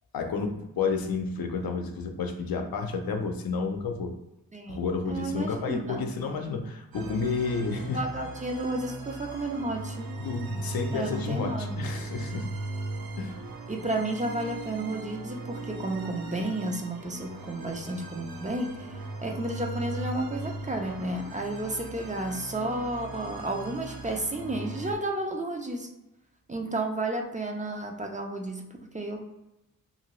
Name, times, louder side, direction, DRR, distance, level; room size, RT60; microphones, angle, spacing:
voice 1, 0.1-4.2 4.7-8.0 10.2-12.5 13.2-13.4, left 4 dB, 90° left, 4 dB, 0.5 m, -31 dB
voice 2, 4.5-6.1 7.9-10.1 10.9-11.8 13.7-25.9 26.5-29.2, right 1 dB, 20° right, 2 dB, 0.4 m, -32 dB
sound 1, 6.9-25.0, right 2 dB, 90° right, 0.6 m, -38 dB
2.8 x 2.6 x 3.0 m, 0.93 s
wide cardioid pair, 120°, 35 cm